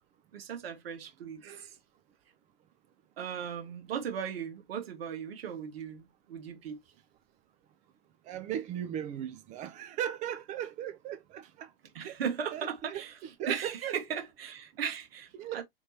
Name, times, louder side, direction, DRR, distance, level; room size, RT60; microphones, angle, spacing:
voice 1, 0.3-1.8 3.2-6.8 11.9-15.6, right 7 dB, 65° right, 1.5 m, -37 dB
voice 2, 8.3-11.7 12.0-12.2 12.5-13.0 13.4-13.9 15.3-15.6, right 10 dB, 25° right, 0.4 m, -37 dB
3.4 x 3.0 x 2.7 m
hypercardioid pair, 110°, 31 cm